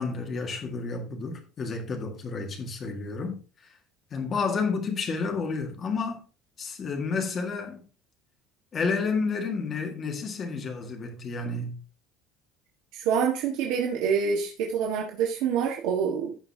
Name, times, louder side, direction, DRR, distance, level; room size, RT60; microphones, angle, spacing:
voice 1, 0.0-3.4 4.1-6.2 6.6-7.8 8.7-11.8, left 4 dB, 25° left, 1.8 m, -30 dB
voice 2, 12.9-16.4, right 6 dB, 70° right, 1.6 m, -26 dB
15.5 x 5.5 x 2.8 m
cardioid pair, 170°, 0 cm